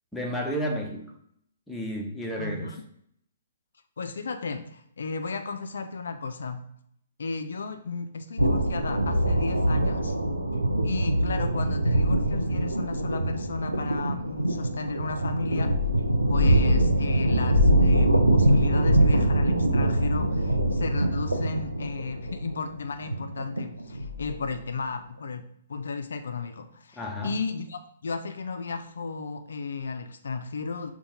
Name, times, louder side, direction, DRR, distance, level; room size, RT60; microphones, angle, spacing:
voice 1, 0.1-1.1 1.7-2.7 27.0-27.4, equal, 5° left, -1 dB, 0.5 m, -32 dB
voice 2, 2.4-2.8 4.0-6.6 7.2-10.1 10.8-15.7 16.3-25.4 25.7-30.9, left 4 dB, 60° left, 7 dB, 0.3 m, -34 dB
sound 1, 8.4-24.5, right 1 dB, 85° right, 0.4 m, -23 dB
5.5 x 2.2 x 2.7 m, 0.70 s
figure-of-eight pair, 120°, 0 cm